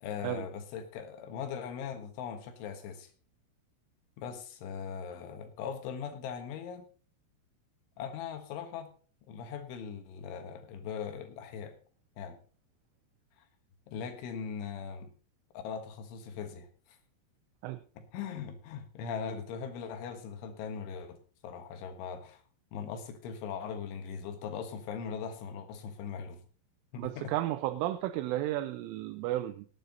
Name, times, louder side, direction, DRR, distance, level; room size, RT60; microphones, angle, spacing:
voice 1, 0.0-3.1 4.2-6.8 8.0-8.9 9.3-11.7 12.2-12.4 13.4-13.5 13.9-15.1 15.5-17.0 18.0-21.2 21.4-22.4 22.7-26.4 26.9-27.3, left 7 dB, 75° left, 7 dB, 3.9 m, -40 dB
voice 2, 27.0-29.7, right 15 dB, 85° right, 9 dB, 3.2 m, -33 dB
18.0 x 9.3 x 3.9 m, 0.40 s
omnidirectional pair, 5.7 m